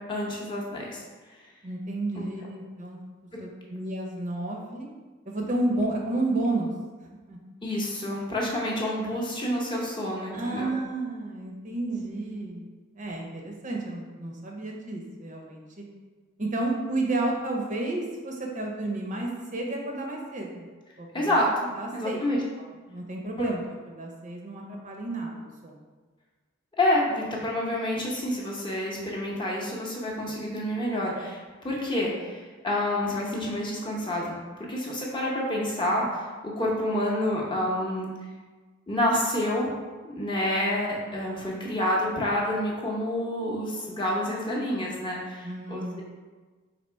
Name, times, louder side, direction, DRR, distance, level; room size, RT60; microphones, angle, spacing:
voice 1, 0.1-1.0 2.2-2.3 7.6-10.7 21.1-22.4 23.4-23.5 26.8-38.1 38.9-39.7 40.0-46.0, left 1 dB, 25° left, -3 dB, 0.7 m, -28 dB
voice 2, 1.6-3.0 3.4-4.9 5.3-6.7 7.3-7.4 9.1-9.2 10.3-15.8 16.4-20.6 21.0-21.1 21.8-22.2 22.6-23.6 23.9-25.8 45.4-46.0, right 2 dB, 40° right, 0 dB, 0.6 m, -31 dB
4.1 x 2.9 x 4.4 m, 1.4 s
head